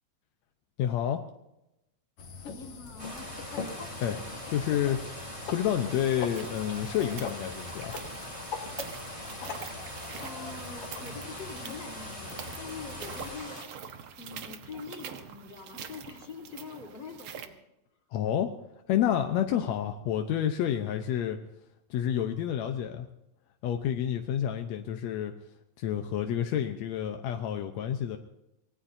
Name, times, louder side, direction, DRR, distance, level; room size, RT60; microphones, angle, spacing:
voice 1, 0.8-1.2 4.0-4.2 4.5-5.0 5.5-8.0 18.1-18.5 18.9-21.4 21.9-23.1 23.6-25.3 25.8-28.2, left 10 dB, 75° left, 5 dB, 1.7 m, -29 dB
sound 1, 2.2-13.4, left 5 dB, 50° left, 2.1 m, -42 dB
voice 2, 2.5-3.4 10.2-13.6 14.2-17.6, left 4 dB, 30° left, -1 dB, 3.8 m, -44 dB
sound 2, 3.0-13.6, equal, 10° right, 2.8 m, -42 dB
sound 3, 5.9-17.5, right 7 dB, 80° right, 1.2 m, -46 dB
24.5 x 19.0 x 2.7 m, 0.89 s
omnidirectional pair, 4.1 m